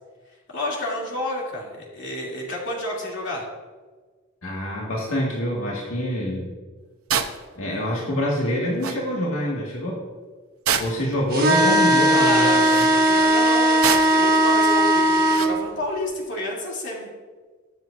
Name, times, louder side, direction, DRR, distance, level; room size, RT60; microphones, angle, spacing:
voice 1, 0.5-3.4 12.1-17.1, left 1 dB, 60° left, -3 dB, 2.9 m, -30 dB
voice 2, 4.4-6.5 7.6-10.0 10.8-12.9, equal, 85° left, -4 dB, 2.0 m, -26 dB
sound 1, 7.1-7.4 8.5-8.6 8.8-9.0 10.7-11.1 12.6-12.9 13.8-14.2 15.3-15.6, right 7 dB, 85° right, 0.8 m, -25 dB
sound 2, 11.3-15.5, right 1 dB, 45° right, 1.4 m, -18 dB
21.5 x 7.6 x 2.6 m, 1.4 s
head